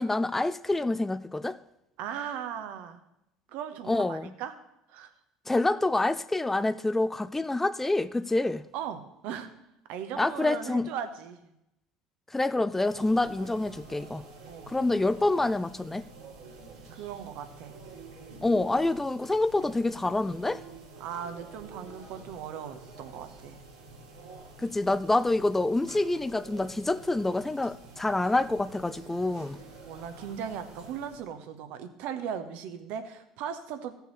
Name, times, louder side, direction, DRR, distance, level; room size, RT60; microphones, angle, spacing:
voice 1, 0.0-1.6 3.9-4.3 5.5-8.6 10.2-10.9 12.3-14.2 14.7-16.1 18.4-20.6 24.6-29.6, left 2 dB, 10° left, 0.4 m, -27 dB
voice 2, 2.0-3.0 3.5-4.5 4.9-5.1 5.7-5.8 8.7-9.5 9.9-11.5 14.5-14.7 16.9-17.8 21.0-23.6 29.8-33.9, right 8 dB, 65° right, 1.0 m, -38 dB
sound 1, 12.7-31.3, right 3 dB, 85° right, 3.1 m, -48 dB
15.0 x 6.9 x 3.2 m
hypercardioid pair, 70°, 3 cm